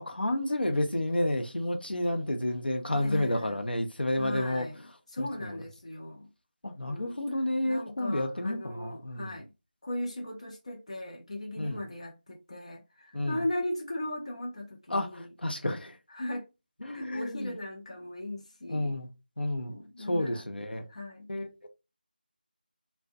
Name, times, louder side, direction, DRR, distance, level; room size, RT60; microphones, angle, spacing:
voice 1, 0.0-4.7 5.2-5.6 6.6-9.3 11.6-11.8 13.1-13.4 14.9-16.0 16.8-17.5 18.7-19.1 19.4-19.7 20.1-20.8 21.3-21.7, left 1 dB, 80° left, 0.7 m, -30 dB
voice 2, 2.9-3.6 4.2-6.3 6.8-9.5 9.8-15.3 16.1-16.5 16.9-19.0 19.7-20.5 20.9-21.3, left 1 dB, 40° left, 0.5 m, -38 dB
2.6 x 2.1 x 2.4 m
figure-of-eight pair, 175°, 5 cm